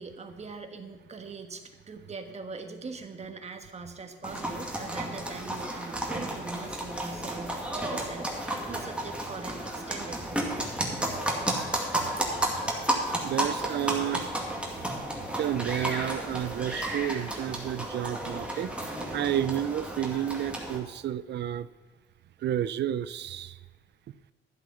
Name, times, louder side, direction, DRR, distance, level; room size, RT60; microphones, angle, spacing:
voice 1, 0.0-10.5, right 4 dB, 35° right, 6 dB, 1.4 m, -42 dB
sound 1, 4.2-20.8, right 1 dB, 5° right, 2.2 m, -32 dB
voice 2, 13.2-14.3 15.4-18.7 19.1-21.7 22.4-23.5, right 11 dB, 60° right, 16 dB, 0.5 m, -31 dB
12.0 x 7.8 x 6.0 m, 1.3 s
cardioid pair, 90°, 20 cm